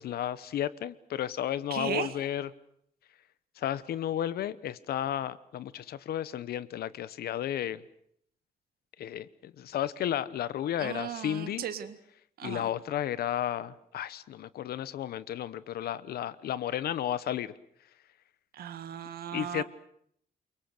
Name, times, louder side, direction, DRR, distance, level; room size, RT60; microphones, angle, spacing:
voice 1, 0.0-2.5 3.6-7.8 9.0-11.6 12.4-17.5 19.3-19.6, left 11 dB, 90° left, 16 dB, 1.1 m, -33 dB
voice 2, 1.7-2.1 10.8-12.0 12.4-12.7 18.5-19.6, right 9 dB, 80° right, 11 dB, 1.8 m, -36 dB
28.5 x 24.0 x 6.7 m, 0.68 s
wide cardioid pair, 155°, 16 cm